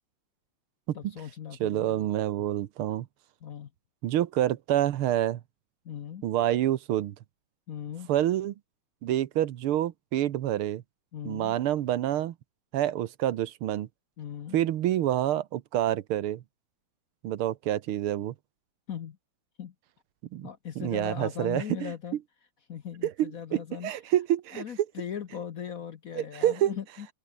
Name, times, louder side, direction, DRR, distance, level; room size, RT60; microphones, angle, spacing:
voice 1, 0.9-2.1 3.4-3.7 5.8-6.2 7.7-8.1 11.1-11.6 14.2-14.6 18.9-19.2 19.6-19.7 20.4-22.2 22.7-23.9 24.5-27.1, left 8 dB, 55° left, 1.1 m, -39 dB
voice 2, 1.6-3.1 4.0-5.4 6.2-7.2 8.1-8.5 9.0-10.8 11.2-12.4 12.7-13.9 14.5-16.4 17.2-18.3 20.3-20.5 20.8-21.9 23.0-24.6 26.2-26.7, right 12 dB, 85° right, 1.8 m, -27 dB
omnidirectional pair, 2.4 m